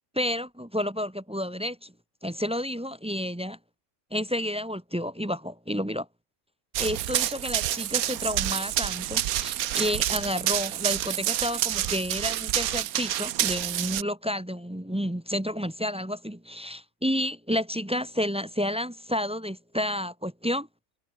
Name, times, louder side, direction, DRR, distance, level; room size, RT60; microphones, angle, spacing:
voice 1, 0.1-1.9 2.2-3.6 4.1-6.1 6.8-20.7, equal, 5° right, 0.6 m, -30 dB
Run, 6.7-14.0, right 13 dB, 80° right, 1.2 m, -28 dB
omnidirectional pair, 1.5 m